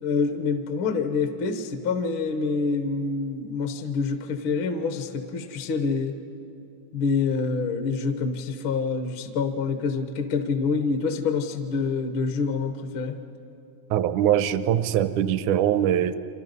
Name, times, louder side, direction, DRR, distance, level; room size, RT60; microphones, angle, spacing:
voice 1, 0.0-6.2 6.9-13.2, left 4 dB, 60° left, 7 dB, 1.4 m, -26 dB
voice 2, 13.9-16.2, right 10 dB, 85° right, 12 dB, 2.1 m, -22 dB
29.5 x 25.5 x 5.4 m, 2.8 s
omnidirectional pair, 3.4 m